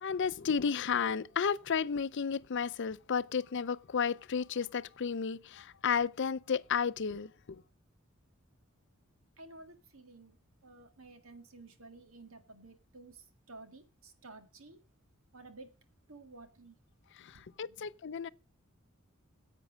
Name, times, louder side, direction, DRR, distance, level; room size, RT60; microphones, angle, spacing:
voice 1, 0.0-7.6 17.2-18.3, left 6 dB, 60° left, 0.5 m, -33 dB
voice 2, 9.4-10.4 10.6-14.8 15.3-15.7 16.1-16.8 17.3-17.9, right 3 dB, 80° right, 1.9 m, -53 dB
10.5 x 8.3 x 6.3 m
head